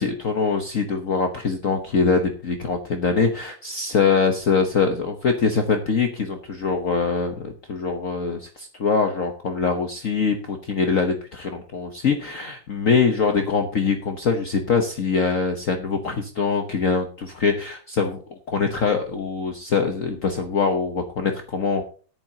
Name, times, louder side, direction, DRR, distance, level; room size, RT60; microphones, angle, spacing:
voice 1, 0.0-21.8, left 5 dB, 50° left, 4 dB, 1.3 m, -23 dB
14.0 x 10.5 x 2.9 m, 0.39 s
omnidirectional pair, 2.0 m